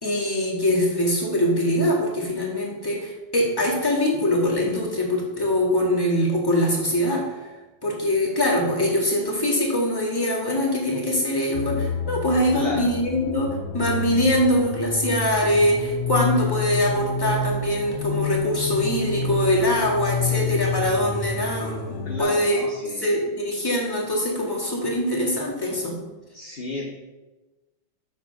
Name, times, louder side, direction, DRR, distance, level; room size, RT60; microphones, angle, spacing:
voice 1, 0.0-7.3 7.8-22.6 23.0-26.0, left 1 dB, 10° left, -4 dB, 1.7 m, -23 dB
sound 1, 11.5-22.2, left 5 dB, 80° left, 1.5 m, -29 dB
voice 2, 12.5-12.9 22.0-23.0 26.3-26.8, left 2 dB, 40° left, -2 dB, 0.9 m, -32 dB
7.3 x 5.1 x 5.8 m, 1.2 s
omnidirectional pair, 2.2 m